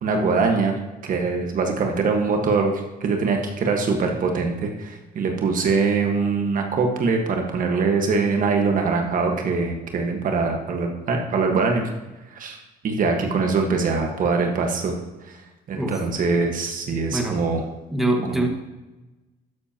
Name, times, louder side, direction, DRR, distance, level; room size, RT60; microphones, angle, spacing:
voice 1, 0.0-0.7 1.0-11.9 12.3-12.6 12.8-14.9 15.3-15.4 15.7-17.6 18.3-18.4, right 4 dB, 55° right, 3 dB, 1.6 m, -23 dB
voice 2, 17.1-17.4 17.9-18.5, right 1 dB, ahead, 1 dB, 1.8 m, -24 dB
12.5 x 9.7 x 3.0 m, 1.1 s
cardioid pair, 110°, 17 cm